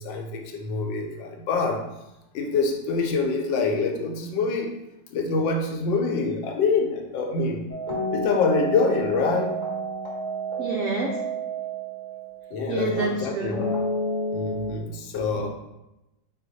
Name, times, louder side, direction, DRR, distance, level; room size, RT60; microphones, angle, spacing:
voice 1, 0.0-1.8 2.3-4.7 5.1-7.6 8.1-9.6 12.5-13.8 14.3-15.5, left 4 dB, 85° left, 3 dB, 1.3 m, -25 dB
sound 1, 7.7-12.8 13.5-14.7, right 1 dB, 35° left, 0.9 m, -30 dB
voice 2, 10.6-11.2 12.7-13.6, right 3 dB, 85° right, 0 dB, 0.7 m, -27 dB
4.2 x 2.4 x 4.0 m, 0.93 s
omnidirectional pair, 2.0 m